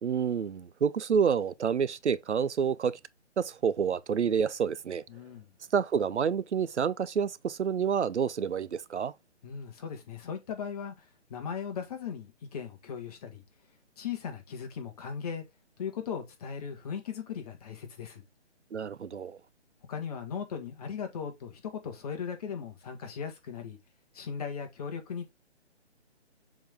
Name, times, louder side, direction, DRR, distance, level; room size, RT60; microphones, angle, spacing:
voice 1, 0.0-3.0 3.4-5.0 5.7-9.1 18.7-19.4, right 7 dB, 75° right, 0.6 m, -28 dB
voice 2, 5.1-5.5 9.4-13.4 14.0-15.4 15.8-18.2 19.9-23.8 24.1-25.3, left 7 dB, 35° left, 1.7 m, -38 dB
7.1 x 3.8 x 3.5 m
figure-of-eight pair, 145°, 35 cm